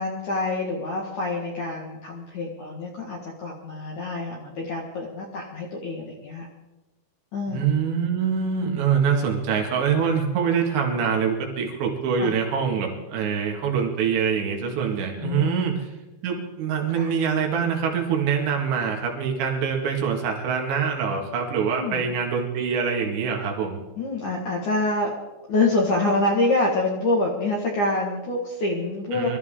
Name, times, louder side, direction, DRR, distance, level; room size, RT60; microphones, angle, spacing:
voice 1, 0.0-6.5 7.3-7.7 12.2-12.3 15.2-15.8 16.9-17.1 21.8-22.1 24.0-25.1 25.5-29.4, left 2 dB, 55° left, -3 dB, 2.8 m, -26 dB
voice 2, 7.5-15.9 16.2-23.8 29.1-29.4, right 6 dB, 90° right, 1 dB, 4.4 m, -24 dB
23.5 x 13.5 x 3.8 m, 1.1 s
omnidirectional pair, 5.0 m